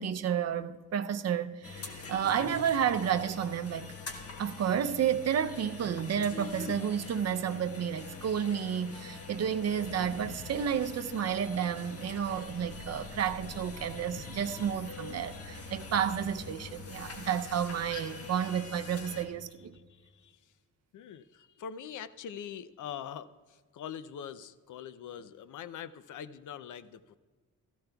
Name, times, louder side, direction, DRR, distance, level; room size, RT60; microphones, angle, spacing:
voice 1, 0.0-3.9 4.4-19.7, right 8 dB, 50° right, 0.6 m, -31 dB
sound 1, 1.6-19.2, left 4 dB, 45° left, 1.4 m, -44 dB
voice 2, 19.7-20.5 20.9-27.2, left 8 dB, 65° left, 0.6 m, -43 dB
16.5 x 14.0 x 2.3 m
cardioid pair, 115°, 33 cm